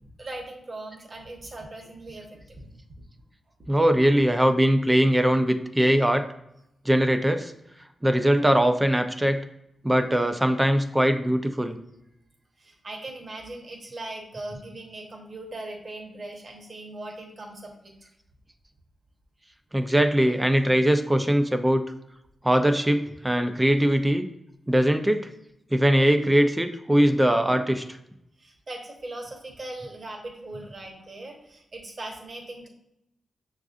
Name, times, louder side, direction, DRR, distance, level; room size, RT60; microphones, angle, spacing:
voice 1, 0.0-2.7 12.6-18.1 28.4-32.7, right 2 dB, 50° right, 1 dB, 1.0 m, -39 dB
voice 2, 3.7-6.2 6.9-7.5 8.0-9.4 9.8-11.8 19.7-21.8 22.4-24.3 24.7-25.3 25.7-27.8, equal, 15° right, 8 dB, 0.4 m, -21 dB
6.0 x 2.4 x 2.5 m, 0.82 s
cardioid pair, 60°, 0 cm